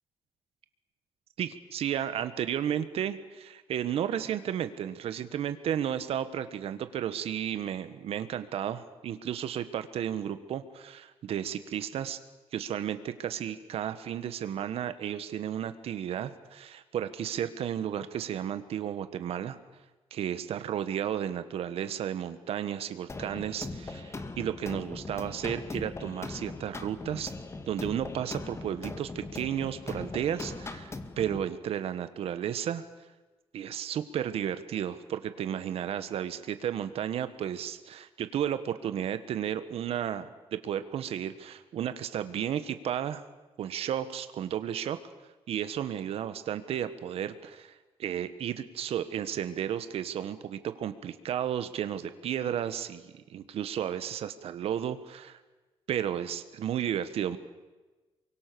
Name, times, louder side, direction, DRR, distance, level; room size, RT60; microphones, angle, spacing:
voice 1, 1.4-12.2 12.5-19.6 20.1-27.3 27.7-32.8 33.5-43.2 43.6-45.0 45.5-55.4 55.9-57.4, right 9 dB, 75° right, 11 dB, 1.6 m, -33 dB
sound 1, 23.1-31.5, left 3 dB, 25° left, 2.1 m, -40 dB
28.5 x 24.0 x 7.0 m, 1.2 s
cardioid pair, 105°, 10 cm